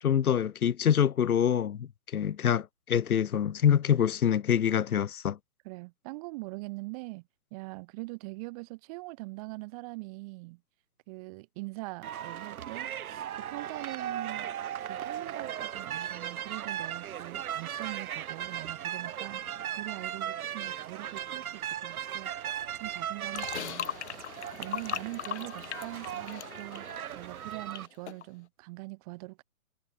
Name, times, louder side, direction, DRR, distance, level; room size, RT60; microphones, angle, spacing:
voice 1, 0.0-5.4, left 9 dB, 80° left, 0.9 m, -26 dB
voice 2, 5.6-7.2 7.5-10.6 11.1-22.3 22.8-23.9 24.5-26.9 27.1-29.4, right 25 dB, 25° right, 1.4 m, -42 dB
sound 1, 12.0-27.9, right 10 dB, 75° right, 0.7 m, -37 dB
sound 2, 23.3-27.8 28.1-28.2, left 11 dB, 50° left, 1.8 m, -39 dB
hypercardioid pair, 140°, 43 cm